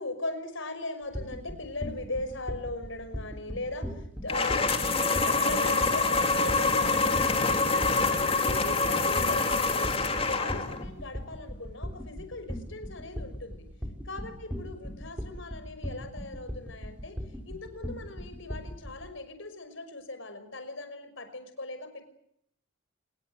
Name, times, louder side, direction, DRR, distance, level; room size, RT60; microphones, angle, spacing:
voice 1, 0.0-4.7 4.9-10.0 10.3-13.7 14.1-17.2 17.4-22.0, left 2 dB, 60° left, 9 dB, 5.9 m, -38 dB
sound 1, 1.1-19.0, equal, 5° right, 5.6 m, -38 dB
sound 2, 4.3-10.8, left 3 dB, 25° left, 2.9 m, -26 dB
27.5 x 21.5 x 8.0 m, 0.74 s
head